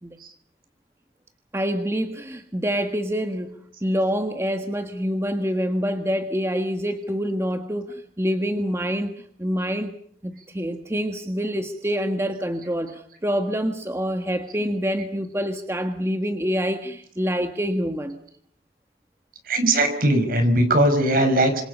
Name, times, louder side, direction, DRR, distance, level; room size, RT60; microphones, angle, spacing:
voice 1, 1.5-9.9 10.2-18.2, equal, 15° right, 6 dB, 1.5 m, -26 dB
voice 2, 19.5-21.6, right 1 dB, 55° right, 8 dB, 5.7 m, -19 dB
27.5 x 26.5 x 5.5 m, 0.65 s
head